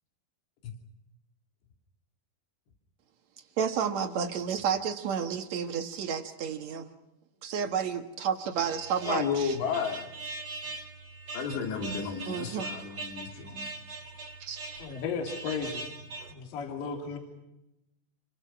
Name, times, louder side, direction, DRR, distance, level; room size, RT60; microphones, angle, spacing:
voice 1, 3.6-6.9 7.4-9.6 12.3-12.8 14.4-14.6, right 7 dB, 65° right, 1.8 m, -31 dB
sound 1, 8.6-16.3, right 3 dB, 40° right, 2.5 m, -41 dB
voice 2, 9.1-10.1 11.3-13.7, left 6 dB, 75° left, 5.2 m, -32 dB
voice 3, 14.8-15.8 16.3-17.2, left 5 dB, 55° left, 4.6 m, -34 dB
28.5 x 23.5 x 6.0 m
omnidirectional pair, 5.1 m